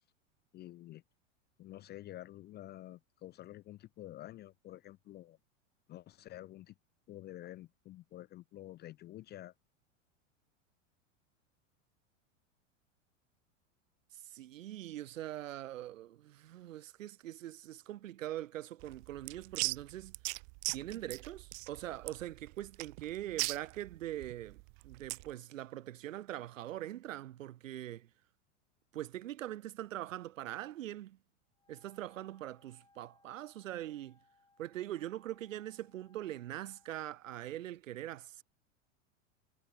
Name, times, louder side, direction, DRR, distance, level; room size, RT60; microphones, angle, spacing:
voice 1, 0.5-1.0 1.6-5.4 5.9-6.7 7.1-9.5, left 14 dB, 25° left, 0.5 m, -49 dB
voice 2, 14.1-20.2 20.7-28.1 28.9-31.2 31.7-34.2 34.6-38.4, right 13 dB, 80° right, 1.6 m, -42 dB
sound 1, 18.8-25.3, right 40 dB or more, 45° right, 0.5 m, -40 dB
Wind instrument woodwind instrument, 31.5-37.2, left 3 dB, 10° left, 6.1 m, -70 dB
hypercardioid pair, 100°, 38 cm